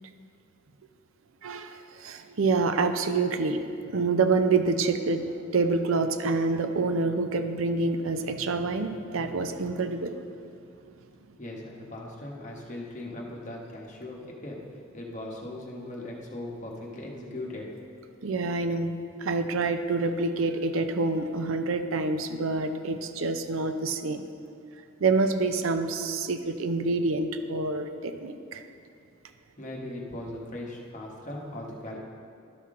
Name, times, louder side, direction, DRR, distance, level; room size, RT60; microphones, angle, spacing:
voice 1, 1.4-10.2 18.2-18.9 19.2-24.2 25.0-28.6, right 3 dB, 75° right, 8 dB, 0.5 m, -27 dB
voice 2, 11.4-14.6 14.9-17.7 29.6-32.0, left 1 dB, 35° left, -2 dB, 1.1 m, -39 dB
12.0 x 5.8 x 3.7 m, 2.4 s
head